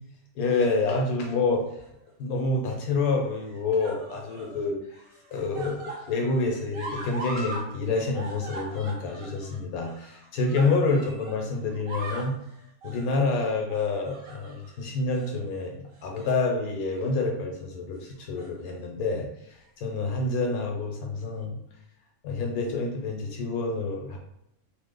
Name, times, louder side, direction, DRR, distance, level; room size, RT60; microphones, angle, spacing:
voice 1, 0.4-1.6 2.2-4.8 5.3-12.4 12.8-21.6 22.2-24.2, left 3 dB, 80° left, 1 dB, 1.2 m, -28 dB
sound 1, 1.8-2.4 3.3-4.6 4.9-7.7 7.9-11.4 11.7-12.4 12.8-13.1 13.7-14.7 15.1-15.3 16.0-16.5 16.8-17.0 18.1-18.8 19.6-19.7, right 2 dB, 70° right, 1.2 m, -41 dB
3.2 x 2.0 x 3.6 m, 0.81 s
omnidirectional pair, 1.5 m